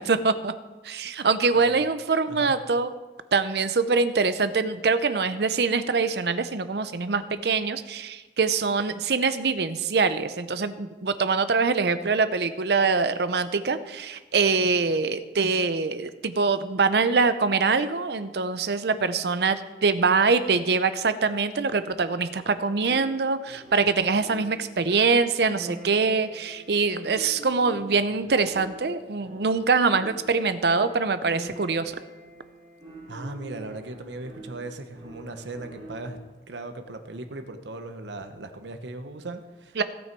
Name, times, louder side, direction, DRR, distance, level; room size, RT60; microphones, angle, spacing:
voice 1, 0.1-0.5 0.8-2.9 3.3-32.0 39.8-39.9, right 4 dB, 65° right, 12 dB, 0.6 m, -24 dB
sound 1, 22.8-36.3, right 1 dB, 30° right, 3.3 m, -45 dB
voice 2, 33.1-36.2 36.5-39.8, right 2 dB, 85° right, 7 dB, 1.0 m, -38 dB
17.0 x 6.3 x 4.5 m, 1.2 s
head